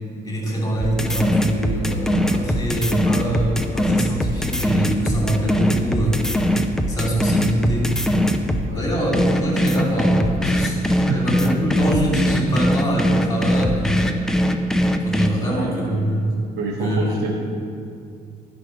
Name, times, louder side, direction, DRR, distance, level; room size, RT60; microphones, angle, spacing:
voice 1, 0.2-6.2 6.9-7.9 8.7-14.3 15.0-16.3 16.8-17.3, right 1 dB, 20° left, -2 dB, 2.7 m, -24 dB
sound 1, 0.8-8.7 9.1-15.3, equal, 5° left, 0.6 m, -21 dB
voice 2, 15.4-16.0 16.5-17.3, right 3 dB, 75° right, -1 dB, 1.3 m, -27 dB
10.5 x 5.1 x 6.3 m, 2.4 s
cardioid pair, 110°, 17 cm